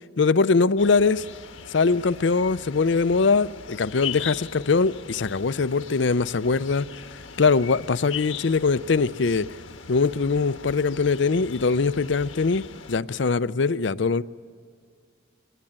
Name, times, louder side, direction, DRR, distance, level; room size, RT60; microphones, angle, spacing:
voice 1, 0.2-1.3 1.7-6.9 7.4-9.5 9.9-14.2, left 4 dB, 65° left, 0.5 m, -22 dB
sound 1, 0.8-13.0, left 7 dB, 80° left, 1.3 m, -40 dB
23.5 x 19.5 x 8.9 m
head